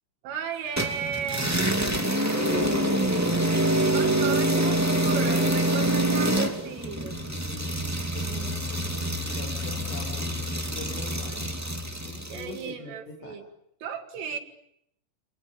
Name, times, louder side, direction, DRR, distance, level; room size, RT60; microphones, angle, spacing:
voice 1, 0.2-1.6 3.9-7.2 12.3-13.4 13.8-14.4, right 7 dB, 75° right, 3 dB, 4.8 m, -34 dB
sound 1, 0.8-12.5, right 1 dB, 25° right, 0.3 m, -26 dB
voice 2, 2.3-3.7 7.2-11.6 12.0-13.4, left 3 dB, 75° left, 0 dB, 7.8 m, -40 dB
30.0 x 25.5 x 7.1 m, 0.75 s
omnidirectional pair, 5.7 m